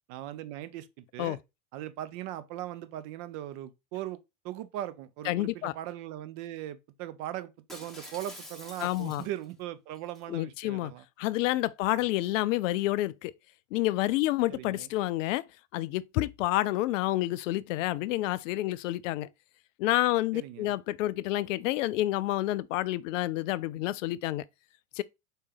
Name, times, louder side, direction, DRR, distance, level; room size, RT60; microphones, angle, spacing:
voice 1, 0.1-1.4 1.7-4.2 4.4-11.0 14.5-14.9 20.3-20.8, right 13 dB, 40° right, 0.6 m, -39 dB
voice 2, 5.3-5.7 8.8-9.3 10.3-10.9 11.2-13.3 13.7-15.4 15.7-19.3 19.8-24.4 25.0-25.1, left 16 dB, 60° left, 0.5 m, -29 dB
Shatter, 7.7-9.5 9.9-10.2, left 1 dB, ahead, 1.1 m, -47 dB
4.5 x 3.3 x 3.1 m
hypercardioid pair, 95°, 45 cm